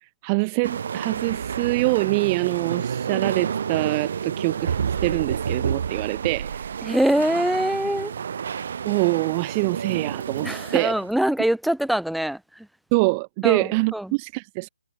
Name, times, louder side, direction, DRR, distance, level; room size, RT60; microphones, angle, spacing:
voice 1, 0.2-6.7 7.3-7.4 8.8-10.9 12.9-14.7, right 29 dB, 25° right, 1.6 m, -25 dB
sound 1, 0.6-11.1, right 7 dB, 55° right, 2.3 m, -29 dB
voice 2, 6.8-8.1 10.4-12.4 13.4-14.1, right 1 dB, ahead, 2.7 m, -23 dB
hypercardioid pair, 155°, 0 cm